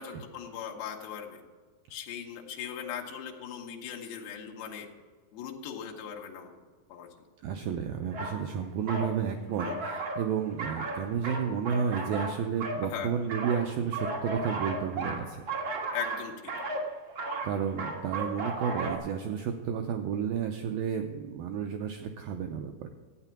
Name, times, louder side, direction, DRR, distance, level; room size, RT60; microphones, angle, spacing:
voice 1, 0.0-1.4 1.9-4.9 5.3-6.5 6.9-7.1 9.5-9.8 12.8-13.1 15.9-16.3, left 8 dB, 70° left, 0 dB, 3.0 m, -39 dB
voice 2, 7.4-15.4 17.4-22.9, right 7 dB, 85° right, 5 dB, 2.0 m, -32 dB
sound 1, 8.1-8.4 8.9-9.1 9.6-10.3 10.6-12.8 13.3-19.0, right 2 dB, 60° right, 1.2 m, -34 dB
12.5 x 8.9 x 5.9 m, 1.5 s
omnidirectional pair, 4.8 m